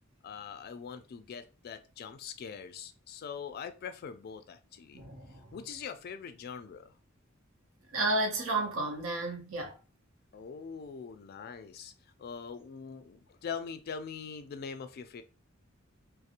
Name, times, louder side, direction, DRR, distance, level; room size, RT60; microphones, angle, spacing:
voice 1, 0.2-5.0 5.5-6.9 10.3-11.9 12.2-15.2, left 6 dB, 50° left, 0.3 m, -42 dB
voice 2, 4.9-5.5 7.9-9.8, right 2 dB, 90° right, 0.7 m, -32 dB
2.4 x 2.0 x 2.8 m
head